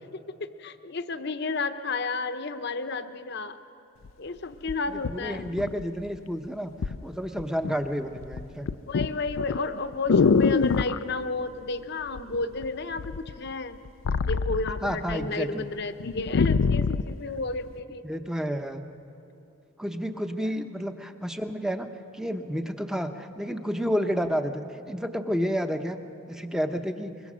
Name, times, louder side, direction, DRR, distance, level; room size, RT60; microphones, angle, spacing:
voice 1, 0.1-3.6 4.2-5.5 8.9-13.8 14.3-18.0 20.3-20.5, left 3 dB, 50° left, 10 dB, 0.8 m, -32 dB
sound 1, 4.0-4.1 4.7-6.2 6.8-7.0 7.4-7.9 8.2-11.0 12.1-12.7 13.0-15.3 15.6-15.7 16.0-17.1 17.8-17.9, left 5 dB, 70° left, 0.4 m, -25 dB
voice 2, 4.9-8.7 14.8-15.7 18.0-18.8 19.8-26.0 26.3-27.1, equal, 5° right, 7 dB, 0.8 m, -30 dB
24.0 x 22.0 x 6.3 m, 2.9 s
head